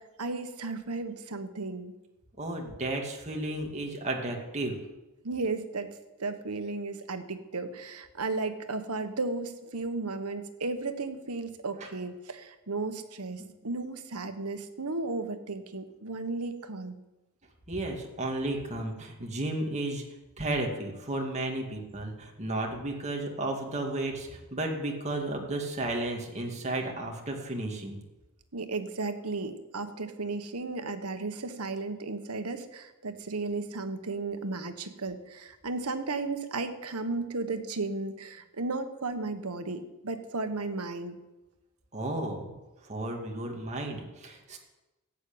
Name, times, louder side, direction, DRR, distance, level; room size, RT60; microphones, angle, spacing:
voice 1, 0.0-1.9 5.2-5.9 6.2-17.0 28.5-41.2, right 3 dB, 85° right, 8 dB, 1.4 m, -34 dB
voice 2, 2.4-4.8 11.8-11.9 17.7-20.0 20.4-28.0 41.9-42.5 42.8-44.6, right 2 dB, 30° right, 0 dB, 2.4 m, -33 dB
14.5 x 8.5 x 8.7 m, 1.1 s
head